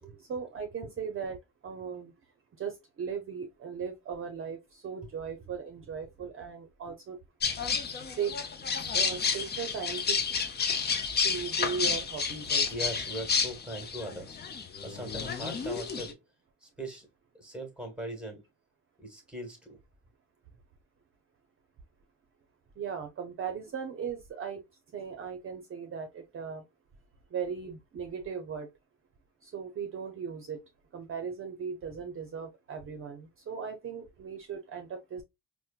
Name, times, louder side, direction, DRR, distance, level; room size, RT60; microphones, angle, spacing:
voice 1, 0.3-1.4 1.6-2.1 2.6-2.7 3.0-7.2 8.2-8.3 8.9-10.2 11.2-12.7 22.8-24.6 24.9-26.6 27.3-28.7 29.4-30.6 30.9-35.2, right 6 dB, 45° right, 0.6 m, -37 dB
sound 1, 7.4-16.1, left 5 dB, 35° left, 0.6 m, -31 dB
voice 2, 12.7-14.4 14.8-16.2 16.6-17.1 17.3-18.4 19.0-19.8, right 1 dB, 5° right, 1.3 m, -40 dB
4.2 x 2.1 x 2.3 m
cardioid pair, 90°, 30 cm